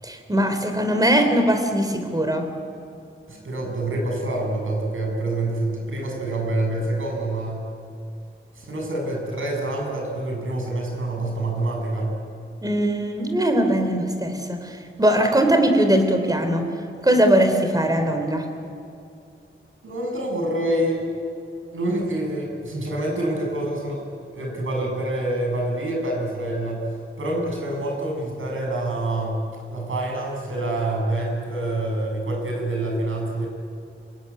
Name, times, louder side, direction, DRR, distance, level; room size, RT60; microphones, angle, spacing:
voice 1, 0.0-2.5 12.6-16.7 17.0-18.5, right 1 dB, 20° right, 6 dB, 3.5 m, -20 dB
voice 2, 3.3-7.7 8.5-12.2 19.8-21.1 21.7-24.0 24.3-26.9 27.2-29.5 29.7-33.5, right 1 dB, 75° right, 0 dB, 7.3 m, -26 dB
26.5 x 21.5 x 9.7 m, 2.5 s
wide cardioid pair, 150°, 21 cm